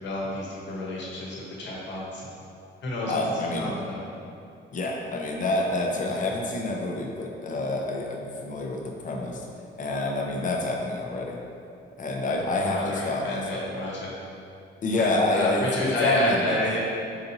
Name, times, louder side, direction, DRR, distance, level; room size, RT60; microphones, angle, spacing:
voice 1, 0.0-2.2 2.8-3.2 3.6-3.9 6.0-6.1 10.3-10.5 12.5-14.1 14.9-16.8, left 1 dB, 65° left, -4 dB, 1.0 m, -30 dB
voice 2, 3.1-3.7 4.7-9.5 9.8-11.4 12.0-13.7 14.8-16.6, left 2 dB, 40° left, 0 dB, 0.5 m, -27 dB
4.8 x 2.7 x 2.7 m, 2.5 s
cardioid pair, 90°, 20 cm